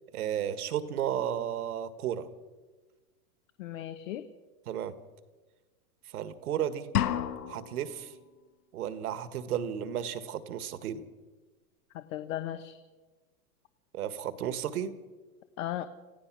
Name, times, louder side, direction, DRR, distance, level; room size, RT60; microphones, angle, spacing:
voice 1, 0.1-2.3 4.7-4.9 6.1-6.9 7.5-8.1 8.7-11.0 13.9-14.9, right 10 dB, 75° right, 12 dB, 1.7 m, -33 dB
voice 2, 3.6-4.2 11.9-12.8 15.6-15.9, left 12 dB, 60° left, 10 dB, 1.1 m, -36 dB
sound 1, 6.9-7.9, left 10 dB, 85° left, 1.5 m, -30 dB
27.5 x 15.5 x 6.2 m, 1.3 s
supercardioid pair, 160°, 45 cm